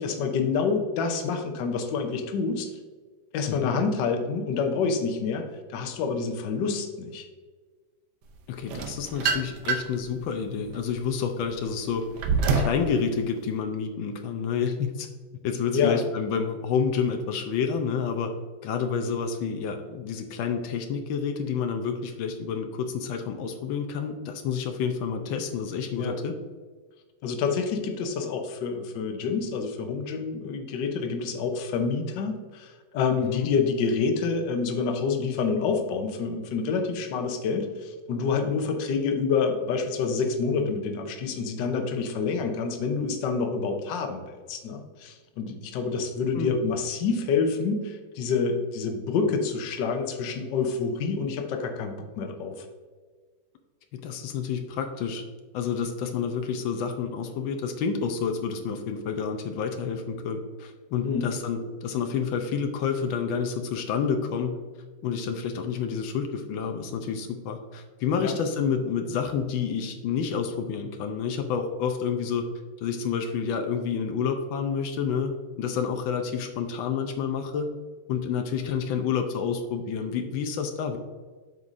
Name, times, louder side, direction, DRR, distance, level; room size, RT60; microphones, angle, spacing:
voice 1, 0.0-2.7 3.3-5.4 5.7-7.3 15.7-16.0 26.0-26.2 27.2-52.6 61.0-61.3 68.2-68.4, left 5 dB, 70° left, 5 dB, 1.4 m, -27 dB
voice 2, 3.5-3.8 8.5-12.0 12.5-15.1 15.4-18.3 18.6-26.3 33.3-33.5 46.3-46.6 53.9-55.2 55.5-64.6 65.0-72.5 72.8-77.7 78.1-81.0, left 6 dB, 85° left, 5 dB, 1.4 m, -29 dB
sound 1, 8.7-10.0 10.6-12.8, right 4 dB, 65° right, 1.2 m, -27 dB
8.0 x 5.4 x 2.6 m, 1.4 s
omnidirectional pair, 2.1 m